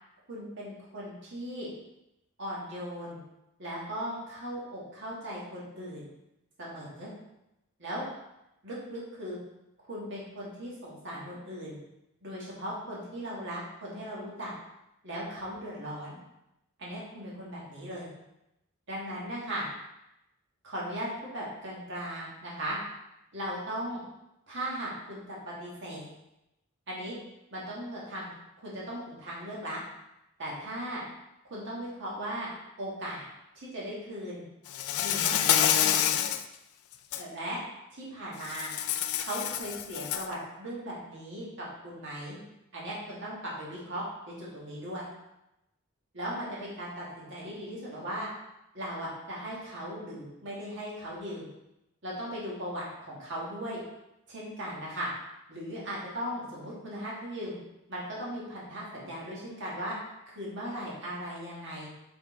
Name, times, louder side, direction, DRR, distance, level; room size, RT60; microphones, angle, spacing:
voice 1, 0.3-1.7 2.4-3.2 3.6-6.0 6.6-7.1 7.8-8.0 8.6-9.4 9.9-11.8 12.2-14.5 15.0-16.2 16.8-18.1 18.9-19.6 20.6-21.1 21.3-22.8 23.3-24.0 24.5-26.1 26.9-27.2 27.5-28.3 28.6-29.8 30.4-31.0 31.5-32.5 32.8-33.2 33.5-34.4 35.0-36.2 37.2-37.6 37.9-38.7 39.2-42.4 42.7-44.0 44.4-45.1 46.1-48.3 48.7-51.5 52.0-53.8 54.3-55.1 55.5-57.6 57.9-60.0 60.3-61.9, equal, 55° right, -6 dB, 1.8 m, -38 dB
Insect, 34.7-36.4 36.9-37.2 38.4-40.3, left 10 dB, 75° left, 0.4 m, -27 dB
6.9 x 3.9 x 3.7 m, 0.89 s
head